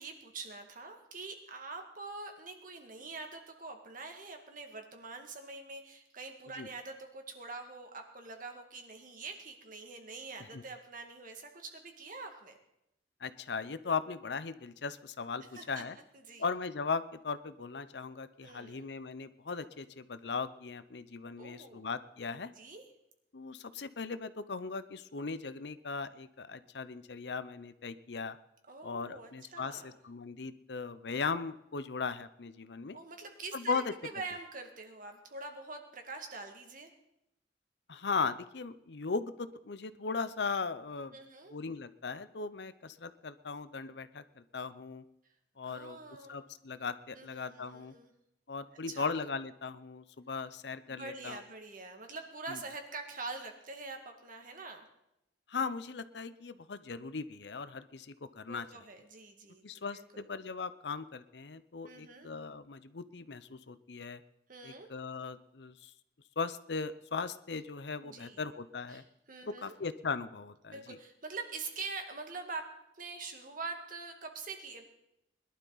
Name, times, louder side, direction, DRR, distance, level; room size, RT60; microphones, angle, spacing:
voice 1, 0.0-12.6 15.5-15.8 16.3-16.4 18.4-18.9 21.4-21.9 22.6-22.8 28.7-29.9 32.9-36.9 41.1-41.5 45.6-46.5 47.1-48.1 48.9-49.1 50.9-54.9 58.4-59.6 59.9-60.2 61.9-62.3 64.5-64.9 68.0-68.5 68.9-69.8 70.7-72.7 72.9-74.8, right 3 dB, 50° right, 4 dB, 2.1 m, -45 dB
voice 2, 13.2-16.0 16.4-22.5 23.3-28.4 28.8-33.0 33.5-33.9 37.9-41.2 41.5-45.0 45.6-46.0 46.3-47.9 48.5-51.4 52.5-52.6 55.5-58.7 59.6-64.2 64.6-65.9 66.4-69.0 69.5-71.0, left 4 dB, 70° left, 14 dB, 0.7 m, -38 dB
21.0 x 12.0 x 4.0 m, 0.82 s
head